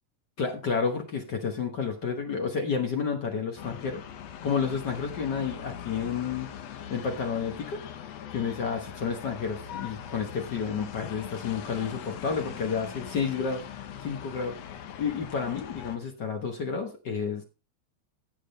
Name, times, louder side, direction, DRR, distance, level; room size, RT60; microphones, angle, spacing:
voice 1, 0.4-4.0 4.4-6.5 6.9-7.8 8.3-13.6 14.0-14.5 15.0-17.4, left 6 dB, 55° left, 4 dB, 1.3 m, -30 dB
sound 1, 3.6-16.0, left 9 dB, 70° left, 2.0 m, -41 dB
15.5 x 6.2 x 3.2 m, 0.31 s
omnidirectional pair, 3.3 m